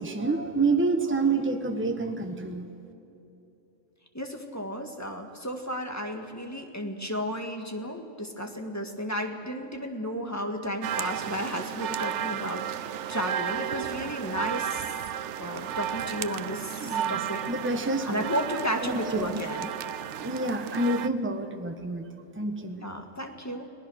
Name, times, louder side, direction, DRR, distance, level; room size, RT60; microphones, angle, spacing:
voice 1, 0.0-2.7 16.8-18.3 18.8-19.3 20.2-22.9, right 3 dB, 10° right, 5 dB, 1.3 m, -28 dB
voice 2, 4.1-14.8 15.4-17.4 18.0-19.7 22.8-23.7, equal, 15° left, 3 dB, 2.0 m, -33 dB
sound 1, 10.8-21.1, right 10 dB, 75° right, 1.0 m, -33 dB
30.0 x 19.5 x 6.5 m, 3.0 s
omnidirectional pair, 1.2 m